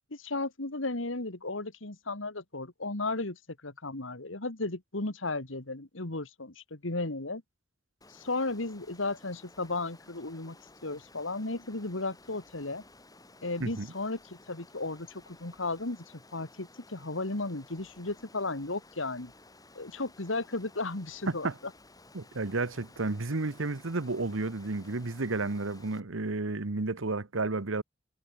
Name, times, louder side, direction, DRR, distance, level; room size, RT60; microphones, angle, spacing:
voice 1, 0.1-7.4 8.1-10.6 10.8-12.8 13.4-16.0 16.3-19.3 19.8-21.5, left 2 dB, 75° left, 2.3 m, -35 dB
Water, 8.0-26.0, left 2 dB, 20° left, 4.2 m, -56 dB
voice 2, 22.1-27.8, right 3 dB, 85° right, 1.2 m, -32 dB
head